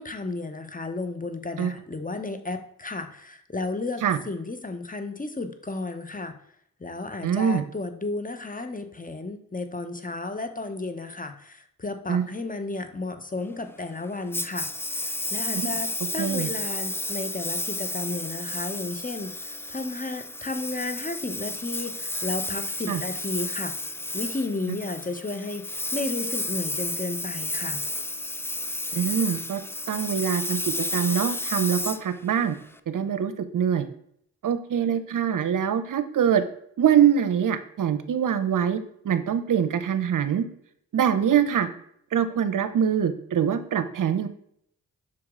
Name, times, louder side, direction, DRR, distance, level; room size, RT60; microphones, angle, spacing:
voice 1, 0.0-6.4 6.8-14.7 15.0-15.9 16.1-23.7 24.1-27.8, left 3 dB, 20° left, 8 dB, 0.9 m, -33 dB
voice 2, 7.2-7.6 12.1-12.2 15.5-15.8 16.2-16.5 22.9-23.0 28.9-29.6 29.9-30.6 30.9-32.5 32.9-33.9 34.4-36.4 36.8-38.8 39.0-40.4 40.9-41.7 42.1-44.3, right 8 dB, 55° right, 11 dB, 0.7 m, -24 dB
Engine, 14.3-32.8, left 2 dB, 5° left, 0.4 m, -32 dB
5.9 x 4.7 x 3.7 m, 0.68 s
supercardioid pair, 40°, 37 cm